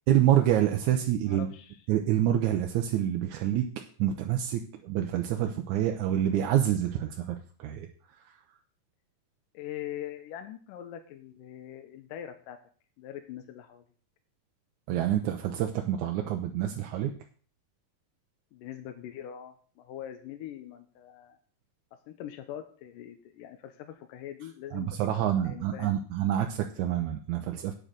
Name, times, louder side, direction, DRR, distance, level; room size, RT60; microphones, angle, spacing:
voice 1, 0.1-1.5 1.9-3.7 4.0-7.9 14.9-17.1 24.7-27.7, right 11 dB, 75° right, 4 dB, 2.0 m, -27 dB
voice 2, 1.3-1.8 9.5-12.6 13.0-13.8 18.5-21.4 22.1-26.0, left 11 dB, 75° left, 7 dB, 2.4 m, -42 dB
8.9 x 7.6 x 6.6 m, 0.44 s
omnidirectional pair, 4.0 m